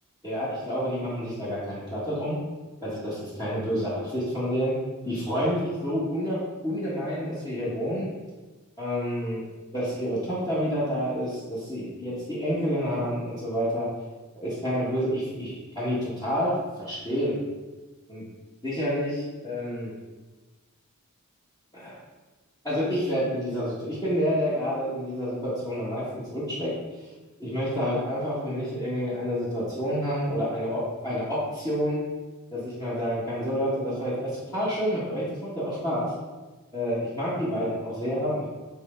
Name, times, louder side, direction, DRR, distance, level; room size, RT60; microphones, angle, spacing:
voice 1, 0.2-2.4 2.8-4.7 5.1-8.1 8.8-9.4 9.7-13.9 14.3-16.5 16.8-17.4 18.1-18.2 18.6-19.9 21.7-22.0 22.6-26.0 26.3-26.7 27.4-32.0 32.5-36.1 36.7-38.5, equal, 15° left, -11 dB, 1.8 m, -28 dB
8.1 x 4.5 x 3.9 m, 1.2 s
head